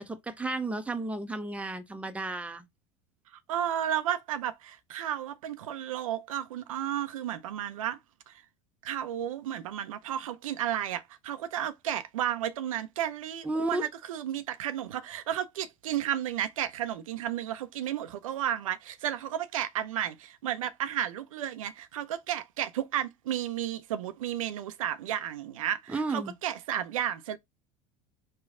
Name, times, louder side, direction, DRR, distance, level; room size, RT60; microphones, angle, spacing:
voice 1, 0.0-2.6 13.4-13.9 25.9-26.3, right 2 dB, 5° right, 0.6 m, -33 dB
voice 2, 3.3-8.0 8.3-8.4 8.8-27.4, right 10 dB, 85° right, 0.4 m, -33 dB
3.2 x 2.2 x 3.6 m
hypercardioid pair, 80°, 17 cm